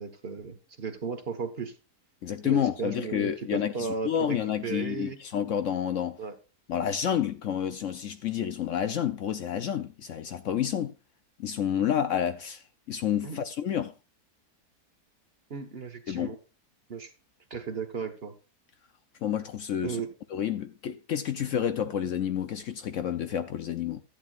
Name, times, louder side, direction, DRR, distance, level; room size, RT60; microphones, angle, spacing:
voice 1, 0.0-1.7 2.4-5.2 6.2-6.3 13.2-13.4 15.5-16.3 16.9-17.1 17.5-18.3 19.8-20.1, right 5 dB, 40° right, 1.4 m, -35 dB
voice 2, 2.2-6.2 6.7-10.9 11.4-13.9 16.1-16.4 19.2-20.0 20.3-24.0, left 9 dB, 65° left, 0.9 m, -29 dB
13.0 x 9.3 x 2.4 m
omnidirectional pair, 1.7 m